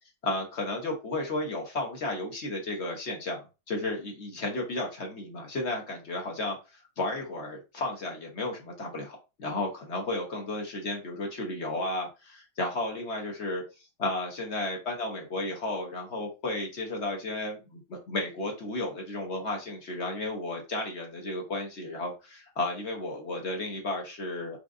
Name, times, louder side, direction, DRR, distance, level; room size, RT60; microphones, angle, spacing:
voice 1, 0.2-13.6 14.0-24.6, left 2 dB, 50° left, 1 dB, 0.8 m, -33 dB
5.1 x 2.4 x 3.6 m, 0.29 s
omnidirectional pair, 2.2 m